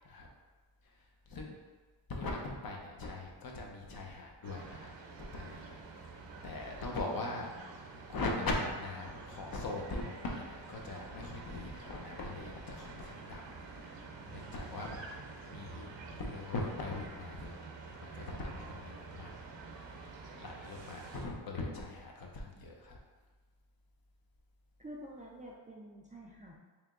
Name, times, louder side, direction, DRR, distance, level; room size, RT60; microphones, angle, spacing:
voice 1, 0.8-1.6 2.1-4.9 5.2-7.8 8.1-13.5 13.8-15.1 15.5-17.6 18.0-19.4 20.4-23.0, left 2 dB, 55° left, 0 dB, 0.7 m, -40 dB
sound 1, 4.4-21.2, right 3 dB, 75° right, 0.7 m, -48 dB
voice 2, 24.8-26.6, right 1 dB, 20° right, -3 dB, 0.4 m, -48 dB
3.4 x 2.9 x 3.7 m, 1.4 s
wide cardioid pair, 120°, 45 cm